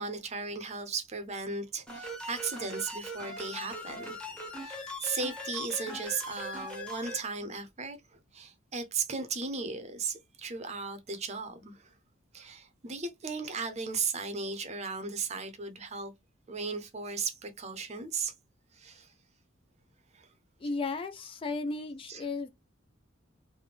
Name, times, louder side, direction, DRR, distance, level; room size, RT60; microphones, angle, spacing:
voice 1, 0.0-11.9 12.3-16.1 16.5-18.3 18.7-19.1 20.1-20.3 22.1-22.2, right 4 dB, 35° right, 0.6 m, -36 dB
sound 1, 1.9-7.2, left 1 dB, 5° left, 0.8 m, -40 dB
voice 2, 20.6-22.5, left 3 dB, 25° left, 0.3 m, -34 dB
3.3 x 2.1 x 3.3 m
head